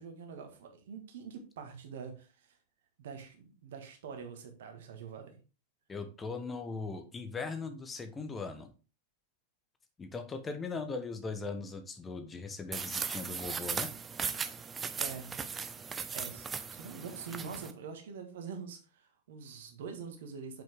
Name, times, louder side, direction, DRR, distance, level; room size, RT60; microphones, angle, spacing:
voice 1, 0.0-2.6 3.0-5.4 15.0-15.4 16.1-20.6, right 6 dB, 60° right, 5 dB, 1.7 m, -45 dB
voice 2, 5.9-8.7 10.0-13.9, left 4 dB, 15° left, 7 dB, 1.1 m, -39 dB
sound 1, 12.7-17.7, right 6 dB, 20° right, 0.6 m, -38 dB
7.6 x 5.8 x 3.6 m, 0.33 s
figure-of-eight pair, 90°, 0 cm